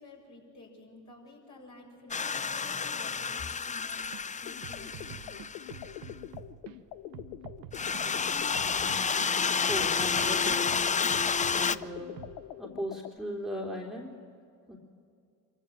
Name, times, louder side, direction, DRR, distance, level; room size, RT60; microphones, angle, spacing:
voice 1, 0.0-5.4, left 3 dB, 40° left, -1 dB, 7.0 m, -51 dB
sound 1, 2.1-6.0 7.7-11.8, left 5 dB, 15° left, 0.5 m, -30 dB
sound 2, 4.0-4.3 4.6-6.8 7.1-9.3 9.7-11.8 12.2-12.4, right 10 dB, 75° right, 1.1 m, -47 dB
sound 3, 4.5-13.2, left 13 dB, 85° left, 0.8 m, -44 dB
voice 2, 9.7-10.8 11.5-12.1 12.6-14.1 14.7-14.8, equal, ahead, -2 dB, 3.1 m, -37 dB
25.0 x 14.5 x 7.8 m, 2.5 s
supercardioid pair, 65°, 44 cm